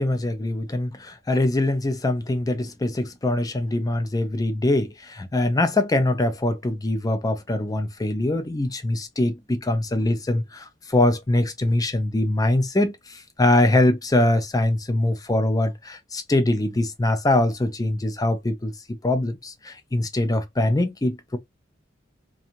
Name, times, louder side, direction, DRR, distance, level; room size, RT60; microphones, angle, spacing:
voice 1, 0.0-18.7 19.0-21.4, left 1 dB, 20° left, 0.5 m, -23 dB
2.6 x 2.3 x 2.8 m
head